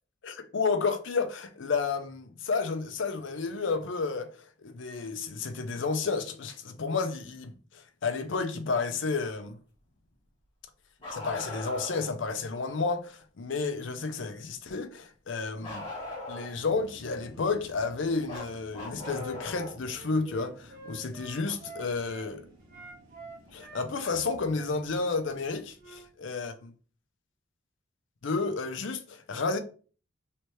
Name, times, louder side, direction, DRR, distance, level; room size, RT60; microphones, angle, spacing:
voice 1, 0.2-4.3 4.6-9.6 11.1-15.9 16.3-22.4 23.5-26.7 28.2-29.6, left 4 dB, 65° left, 0.5 m, -31 dB
Bark, 11.0-12.1 15.6-16.7 18.3-19.8 21.5-21.6 23.5-23.6 24.7-24.8, left 2 dB, 30° left, 1.5 m, -39 dB
sound 1, 16.5-26.2, right 1 dB, 80° right, 1.4 m, -55 dB
Wind instrument woodwind instrument, 19.0-22.3 22.7-26.1, right 2 dB, 40° right, 0.8 m, -48 dB
3.3 x 3.0 x 2.9 m
head